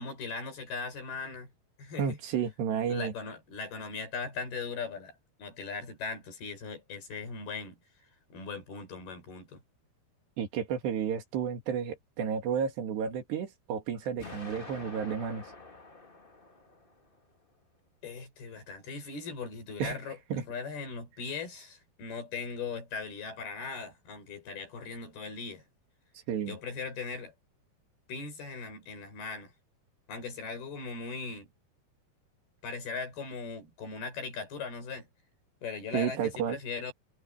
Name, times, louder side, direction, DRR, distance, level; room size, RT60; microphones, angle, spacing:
voice 1, 0.0-1.5 1.8-2.2 2.9-7.8 8.3-9.6 18.0-25.6 26.4-27.3 28.1-29.5 30.1-31.5 32.6-35.1 35.6-36.9, left 4 dB, 65° left, 8.3 m, -39 dB
voice 2, 2.0-3.1 10.4-15.4 19.8-20.0 20.3-20.4 26.3-26.6 35.9-36.6, right 7 dB, 85° right, 4.7 m, -32 dB
Explosion, 14.2-17.2, left 3 dB, 50° left, 0.6 m, -47 dB
omnidirectional pair, 4.7 m